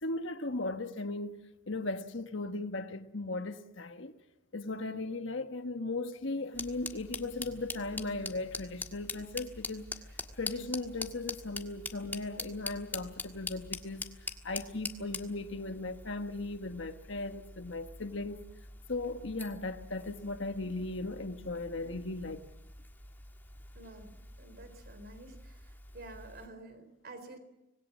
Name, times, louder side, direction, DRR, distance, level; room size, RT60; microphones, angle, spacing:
voice 1, 0.0-4.1 4.5-9.9 10.4-14.1 14.4-18.4 18.9-22.4, left 2 dB, 65° left, 1.4 m, -37 dB
sound 1, 6.5-26.5, left 3 dB, 10° left, 1.6 m, -45 dB
voice 2, 23.7-25.6 25.9-27.4, right 2 dB, 50° right, 3.9 m, -50 dB
26.0 x 20.0 x 7.4 m
head